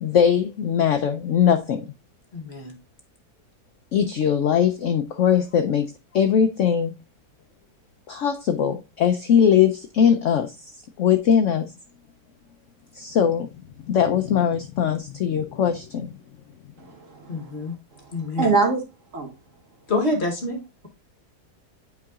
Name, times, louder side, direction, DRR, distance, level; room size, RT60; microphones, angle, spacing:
voice 1, 0.0-1.8 3.9-6.9 8.1-10.5 11.0-11.7 12.9-13.5 13.9-16.1, left 8 dB, 70° left, 0.7 m, -20 dB
voice 2, 2.3-2.7 17.3-17.8 18.1-18.5 19.9-20.9, left 2 dB, 45° left, 1.2 m, -27 dB
voice 3, 16.8-17.6 18.3-18.8 19.1-19.3, right 4 dB, 50° right, 1.6 m, -24 dB
8.9 x 4.6 x 2.3 m
omnidirectional pair, 1.8 m